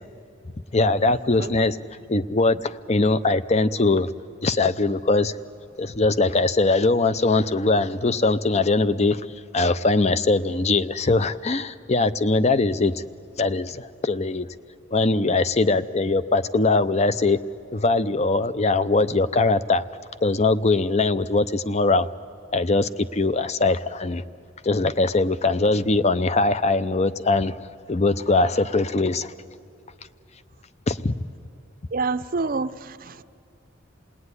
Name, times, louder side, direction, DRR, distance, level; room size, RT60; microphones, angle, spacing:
voice 1, 0.7-1.8 2.1-4.1 4.4-5.3 5.8-9.2 9.5-13.0 13.4-14.5 14.9-17.4 17.7-19.8 20.2-22.1 22.5-24.2 24.6-27.6 27.9-29.3 30.9-31.2, left 3 dB, 35° left, 13 dB, 0.6 m, -21 dB
voice 2, 15.0-15.4 31.9-33.2, right 4 dB, 50° right, 13 dB, 0.6 m, -28 dB
28.0 x 19.5 x 9.7 m, 2.4 s
head